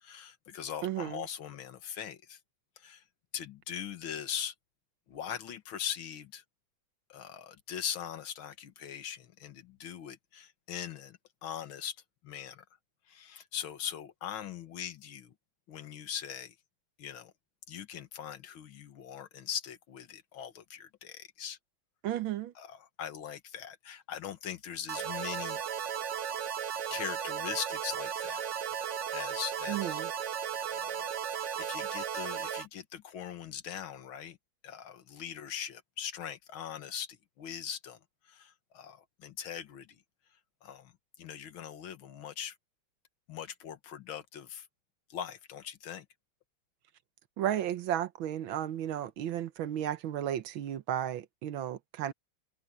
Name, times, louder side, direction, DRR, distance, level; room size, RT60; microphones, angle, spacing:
voice 1, 0.0-2.4 2.8-3.0 3.3-4.5 5.1-6.4 7.1-12.0 12.2-12.6 13.1-15.3 15.7-16.6 17.0-17.3 17.7-21.6 22.6-25.6 26.6-28.4 29.1-30.1 30.7-34.4 34.6-38.0 38.3-40.0 40.6-40.9 41.2-42.6 43.3-44.7 45.1-46.1, left 9 dB, 80° left, 2.1 m, -41 dB
voice 2, 0.8-1.2 22.0-22.5 29.7-30.1 47.4-52.1, right 11 dB, 75° right, 1.7 m, -33 dB
sound 1, 24.9-32.7, right 8 dB, 60° right, 0.8 m, -35 dB
open air
omnidirectional pair, 2.2 m